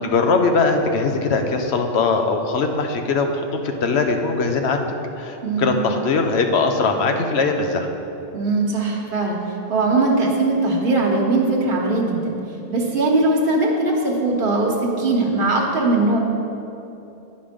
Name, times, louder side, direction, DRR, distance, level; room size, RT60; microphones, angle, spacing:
voice 1, 0.0-4.9 5.2-7.9, left 4 dB, 85° left, 5 dB, 1.0 m, -21 dB
voice 2, 5.4-5.8 8.3-9.4 9.7-12.3 12.7-16.2, right 2 dB, 55° right, -2 dB, 1.2 m, -20 dB
9.8 x 5.3 x 5.1 m, 2.8 s
omnidirectional pair, 1.1 m